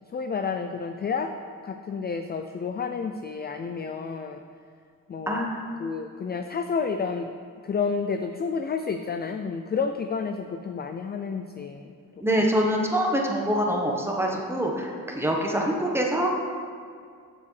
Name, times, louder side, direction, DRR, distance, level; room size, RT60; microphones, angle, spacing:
voice 1, 0.1-1.3 1.6-4.4 5.1-5.5 5.8-7.3 7.6-11.9 12.4-12.5, left 5 dB, 30° left, 6 dB, 0.3 m, -30 dB
voice 2, 12.2-16.3, equal, 5° right, -1 dB, 1.1 m, -25 dB
6.9 x 6.7 x 3.2 m, 2.2 s
cardioid pair, 60°, 36 cm